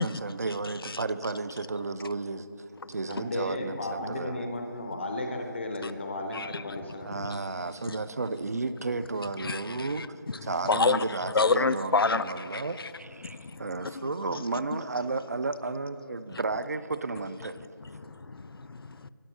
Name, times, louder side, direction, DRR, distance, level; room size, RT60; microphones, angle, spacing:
voice 1, 0.0-2.5 2.9-4.5 7.1-17.6, right 3 dB, 45° right, 0.4 m, -33 dB
voice 2, 3.1-7.4, left 1 dB, 30° left, 0.5 m, -34 dB
voice 3, 9.4-10.1 10.6-12.9 13.2-14.1 14.3-14.4 14.7-14.8 16.3-16.4 17.8-19.1, left 4 dB, 85° left, 0.4 m, -29 dB
11.5 x 5.4 x 6.1 m
figure-of-eight pair, 170°, 12 cm